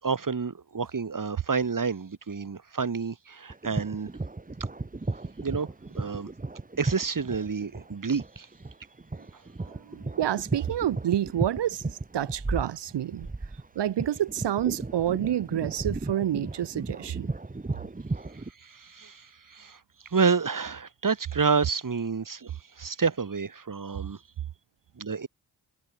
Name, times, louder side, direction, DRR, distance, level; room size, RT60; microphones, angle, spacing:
voice 1, 0.0-4.1 5.4-5.7 6.0-6.3 6.8-8.5 18.3-19.8 20.1-24.2 25.0-25.3, right 5 dB, 50° right, 7.1 m, -29 dB
sound 1, 3.5-18.5, right 3 dB, 20° right, 1.9 m, -35 dB
voice 2, 9.6-13.3 13.7-17.3, right 11 dB, 80° right, 3.0 m, -28 dB
supercardioid pair, 45°, 41 cm